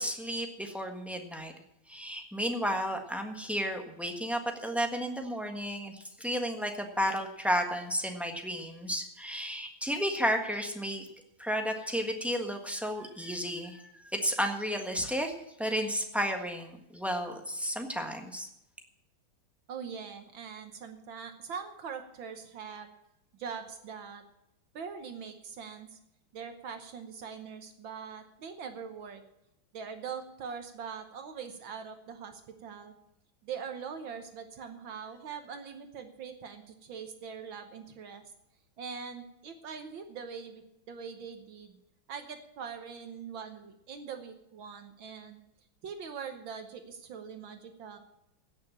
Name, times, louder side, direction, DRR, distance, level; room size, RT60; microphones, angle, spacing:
voice 1, 0.0-1.5 1.9-11.1 11.4-18.5, equal, ahead, 3 dB, 1.1 m, -32 dB
voice 2, 19.7-22.9 23.3-24.2 24.7-26.0 26.3-29.2 29.7-32.9 33.4-38.2 38.8-41.8 42.1-45.4 45.8-48.0, right 6 dB, 70° right, 7 dB, 1.8 m, -42 dB
16.5 x 6.7 x 7.3 m, 0.85 s
omnidirectional pair, 2.3 m